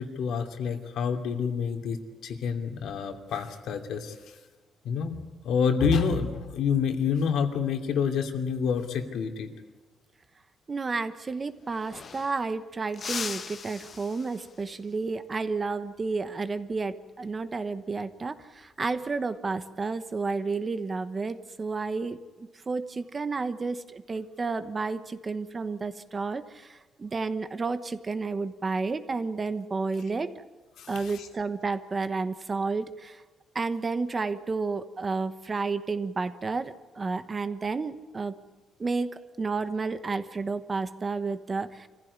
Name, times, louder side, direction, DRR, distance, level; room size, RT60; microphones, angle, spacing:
voice 1, 0.0-4.1 4.8-5.2 5.4-9.5 30.8-31.1, left 6 dB, 80° left, 4 dB, 2.6 m, -28 dB
voice 2, 10.7-30.5 30.9-33.2 33.5-38.3 38.8-41.9, right 4 dB, 25° right, 11 dB, 1.1 m, -31 dB
sound 1, 11.3-11.4 11.6-12.5 12.9-14.7 17.2-17.5 18.9-19.4, left 6 dB, 40° left, 1.1 m, -39 dB
25.5 x 15.5 x 9.7 m, 1.2 s
cardioid pair, 145°, 0 cm